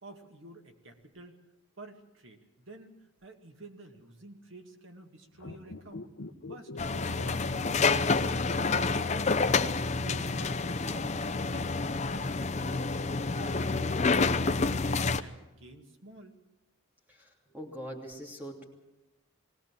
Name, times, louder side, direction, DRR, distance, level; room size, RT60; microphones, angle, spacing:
voice 1, 0.0-1.4 1.8-6.1 6.4-6.9 7.2-9.4 10.0-13.0 13.3-16.4, right 1 dB, 70° right, 4 dB, 2.1 m, -50 dB
sound 1, 5.3-8.7 9.0-9.1, left 2 dB, 75° left, 0.8 m, -44 dB
sound 2, 6.8-15.2, left 4 dB, 35° left, 0.6 m, -28 dB
voice 2, 17.1-18.6, equal, 10° right, 0 dB, 3.1 m, -43 dB
20.5 x 17.0 x 7.5 m, 1.0 s
head